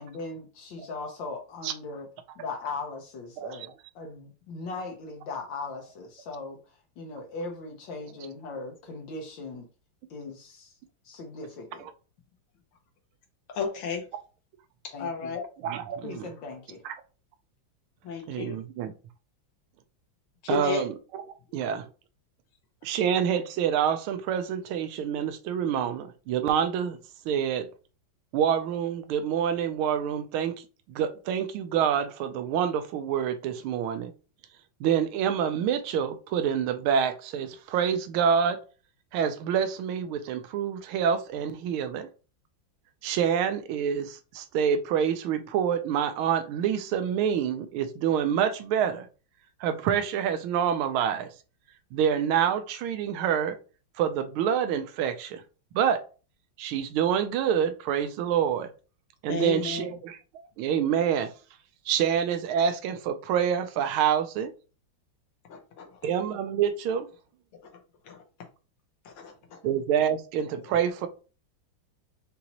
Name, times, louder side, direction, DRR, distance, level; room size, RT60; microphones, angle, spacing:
voice 1, 0.0-2.1 2.4-6.6 7.0-9.7 10.1-10.8 11.0-11.9 14.9-15.4 16.0-16.8, left 3 dB, 70° left, 1.5 m, -39 dB
voice 2, 3.4-3.7 15.6-16.3 16.8-16.9 18.3-18.9 20.5-21.9 22.8-27.0 27.3-27.7 28.3-30.6 30.9-34.1 34.8-38.6 39.1-42.1 43.0-49.1 49.6-51.3 51.9-53.6 54.0-55.4 55.7-56.0 56.6-58.7 59.2-60.2 60.6-61.3 61.9-64.5 66.0-67.1 69.6-71.1, right 8 dB, 85° right, 1.4 m, -27 dB
voice 3, 13.5-14.0 14.8-15.4 18.0-18.6 20.4-20.8 59.3-59.9 65.5-65.9 68.1-68.2 69.0-69.6, left 5 dB, 85° left, 1.7 m, -32 dB
5.4 x 2.7 x 2.9 m
omnidirectional pair, 2.2 m